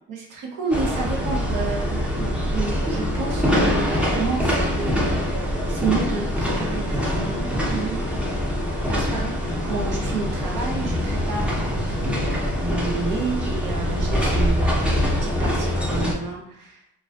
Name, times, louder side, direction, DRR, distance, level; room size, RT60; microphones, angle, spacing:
voice 1, 0.1-8.0 8.8-9.4 9.6-14.9 15.2-16.8, right 4 dB, 70° right, 0 dB, 0.7 m, -30 dB
sound 1, 0.7-16.1, equal, 5° right, 0.5 m, -24 dB
2.4 x 2.2 x 2.3 m, 0.73 s
cardioid pair, 75°, 32 cm